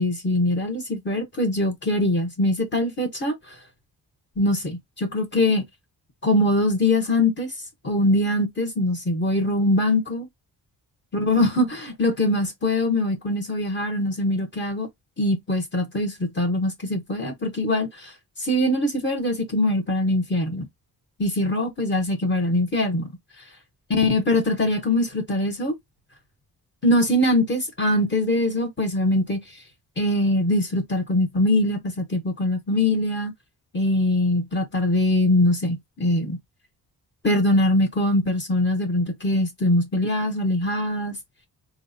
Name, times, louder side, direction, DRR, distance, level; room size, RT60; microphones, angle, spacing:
voice 1, 0.0-3.5 4.4-5.6 6.2-7.5 7.8-10.3 11.1-14.9 15.2-18.1 18.4-20.7 21.2-23.1 23.9-25.7 26.8-29.4 30.0-33.3 33.7-36.4 37.2-41.2, left 1 dB, 30° left, 0.9 m, -22 dB
4.4 x 2.1 x 2.6 m
wide cardioid pair, 140°, 37 cm